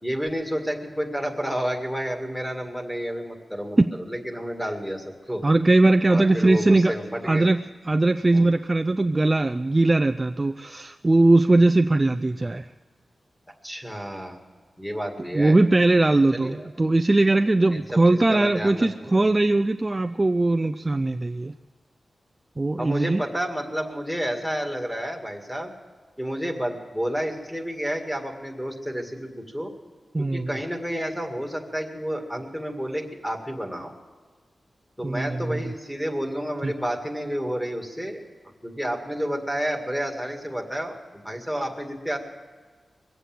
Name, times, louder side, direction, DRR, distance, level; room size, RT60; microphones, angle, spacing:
voice 1, 0.0-5.4 6.1-7.5 8.3-8.6 13.6-14.4 14.8-15.6 16.3-16.7 17.7-19.2 22.8-25.7 26.2-29.7 30.2-33.9 35.0-38.2 38.6-42.2, equal, 5° left, 3 dB, 2.0 m, -30 dB
voice 2, 5.4-6.9 7.2-12.7 15.3-21.5 22.6-23.2 30.1-30.6 35.0-35.6 36.6-36.7, right 2 dB, 25° right, 9 dB, 0.4 m, -20 dB
22.5 x 8.2 x 7.7 m, 1.5 s
wide cardioid pair, 115°, 0 cm